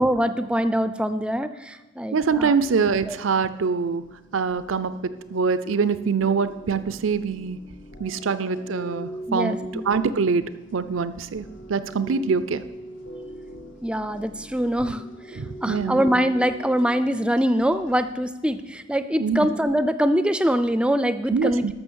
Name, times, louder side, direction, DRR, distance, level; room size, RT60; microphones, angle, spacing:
voice 1, 0.0-2.5 3.1-3.2 9.3-9.8 13.8-21.7, equal, 5° right, 11 dB, 0.4 m, -24 dB
voice 2, 2.1-4.0 4.3-7.6 8.0-10.4 10.7-12.6 15.4-16.0 19.2-19.5 21.3-21.7, right 5 dB, 85° right, 13 dB, 0.5 m, -24 dB
sound 1, 2.5-18.1, right 1 dB, 70° left, 1.1 m, -41 dB
12.5 x 6.2 x 6.3 m, 1.1 s
head